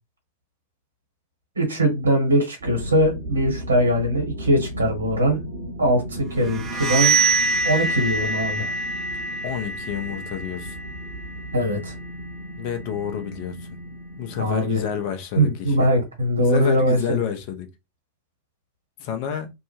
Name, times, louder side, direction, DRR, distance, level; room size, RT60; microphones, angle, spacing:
voice 1, 1.6-5.4 5.8-7.1 7.6-8.7 11.5-11.9 14.4-14.8 15.4-17.2, equal, 75° right, 1.2 m, -21 dB
sound 1, 2.6-15.2, right 1 dB, 60° right, 0.8 m, -36 dB
sound 2, 6.4-12.1, right 3 dB, 20° right, 0.5 m, -25 dB
voice 2, 9.4-10.8 12.6-13.7 14.2-15.9 16.4-17.7 19.0-19.5, left 8 dB, 45° left, 0.6 m, -29 dB
2.6 x 2.1 x 2.9 m
figure-of-eight pair, 90°, 0 cm